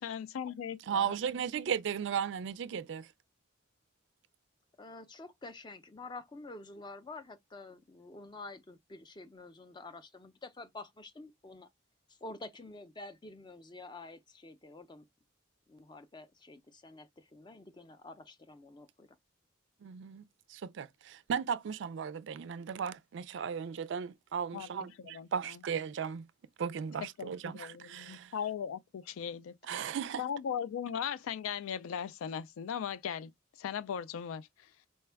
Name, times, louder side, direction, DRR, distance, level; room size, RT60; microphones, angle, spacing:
voice 1, 0.0-1.2 24.5-24.7 25.0-25.6 27.2-29.5 30.2-33.3 33.6-34.5, left 8 dB, 90° left, 0.3 m, -38 dB
voice 2, 0.9-3.1 19.8-20.2 20.5-26.3 26.6-28.3 29.7-30.2, right 7 dB, 60° right, 0.3 m, -36 dB
voice 3, 4.8-11.7 12.1-15.1 15.7-19.2, left 2 dB, 20° left, 0.4 m, -48 dB
4.3 x 2.2 x 3.3 m
head